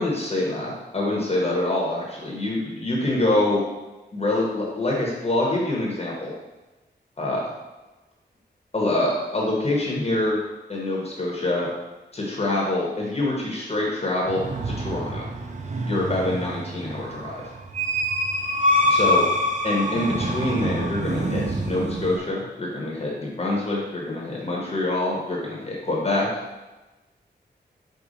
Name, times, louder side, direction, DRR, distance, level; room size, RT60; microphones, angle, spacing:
voice 1, 0.0-3.6 4.1-6.3 7.2-7.4 8.7-10.4 10.7-11.7 12.1-15.2 15.9-17.4 18.9-19.2 19.6-26.3, left 2 dB, 35° left, -3 dB, 1.1 m, -25 dB
sound 1, 14.3-22.2, equal, 40° right, 0.5 m, -26 dB
5.0 x 2.3 x 3.9 m, 1.1 s
wide cardioid pair, 80°, 18 cm